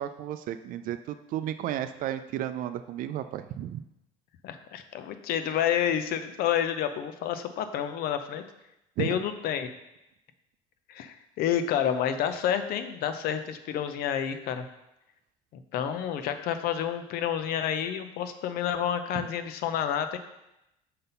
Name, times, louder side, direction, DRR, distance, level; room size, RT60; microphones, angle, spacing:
voice 1, 0.0-3.8 9.0-9.2, right 11 dB, 55° right, 10 dB, 0.4 m, -33 dB
voice 2, 4.4-8.4 9.0-9.7 10.9-14.7 15.5-20.2, left 9 dB, 65° left, 9 dB, 0.7 m, -29 dB
5.7 x 4.0 x 5.4 m, 0.89 s
supercardioid pair, 90°, 17 cm